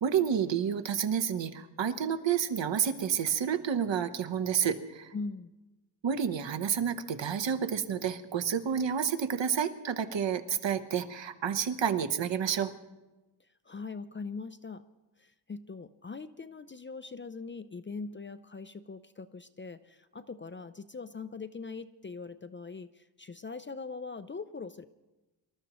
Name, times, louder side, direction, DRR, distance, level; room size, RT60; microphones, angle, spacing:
voice 1, 0.0-5.1 6.0-12.7, right 8 dB, 70° right, 10 dB, 0.9 m, -30 dB
voice 2, 5.1-5.5 13.4-14.9 15.2-24.9, left 4 dB, 30° left, 12 dB, 0.4 m, -42 dB
25.5 x 13.0 x 3.0 m, 1.1 s
wide cardioid pair, 120°, 46 cm